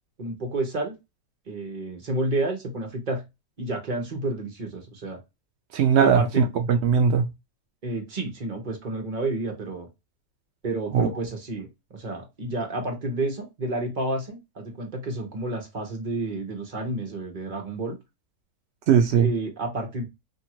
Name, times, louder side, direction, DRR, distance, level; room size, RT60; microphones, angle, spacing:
voice 1, 0.2-0.9 1.5-3.2 3.6-5.2 6.0-6.5 7.8-9.9 10.6-11.7 11.9-18.0 19.2-20.1, right 2 dB, 35° right, 1.0 m, -30 dB
voice 2, 5.7-7.3 10.9-11.1 18.9-19.3, right 7 dB, 85° right, 0.5 m, -19 dB
2.8 x 2.6 x 2.8 m
omnidirectional pair, 1.7 m